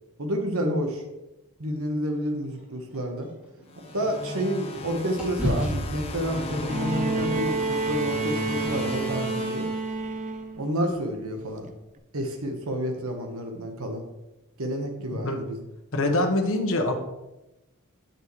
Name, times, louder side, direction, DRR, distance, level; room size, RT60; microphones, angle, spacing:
voice 1, 0.2-1.0 1.6-3.3 3.9-9.7 10.6-11.7 12.1-14.0 14.6-15.6, equal, 65° right, 4 dB, 1.3 m, -29 dB
sound 1, 2.5-4.8 5.2-9.4, left 1 dB, 5° right, 2.4 m, -35 dB
sound 2, 3.7-10.4, left 1 dB, 25° left, 0.8 m, -36 dB
Bowed string instrument, 6.7-10.7 12.0-12.1, right 3 dB, 35° right, 0.5 m, -29 dB
voice 2, 15.9-16.9, left 2 dB, 65° left, 4 dB, 1.1 m, -24 dB
8.5 x 7.4 x 3.2 m, 0.98 s
head